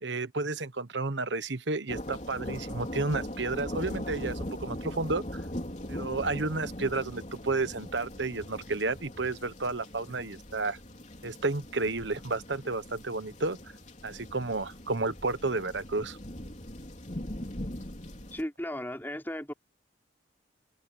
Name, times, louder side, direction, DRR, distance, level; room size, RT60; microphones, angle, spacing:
voice 1, 0.0-5.4 5.9-10.8 11.2-13.6 14.0-16.2, right 3 dB, 70° right, 1.3 m, -31 dB
sound 1, 1.9-18.4, left 1 dB, 40° left, 3.7 m, -40 dB
voice 2, 18.3-19.5, left 1 dB, 10° left, 5.3 m, -35 dB
open air
head